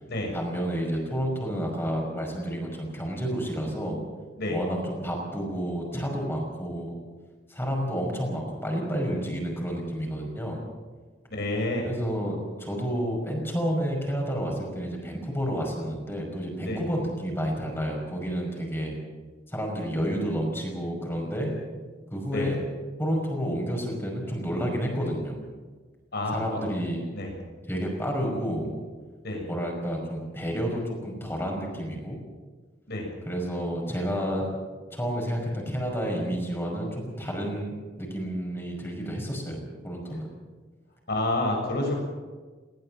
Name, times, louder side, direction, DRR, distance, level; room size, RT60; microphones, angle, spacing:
voice 1, 0.3-4.0 4.5-6.9 7.5-10.6 11.8-18.9 19.5-21.5 22.1-22.6 23.0-25.4 26.3-27.0 27.6-28.7 29.5-32.2 33.3-34.5 34.9-39.6 39.8-40.3, equal, 15° left, 1 dB, 5.4 m, -30 dB
voice 2, 11.3-11.9 16.6-16.8 22.3-22.5 26.1-26.4 27.1-27.3 29.2-29.4 32.9-33.1 41.1-42.0, left 1 dB, 60° left, 1 dB, 6.9 m, -28 dB
20.0 x 17.0 x 7.7 m, 1.4 s
head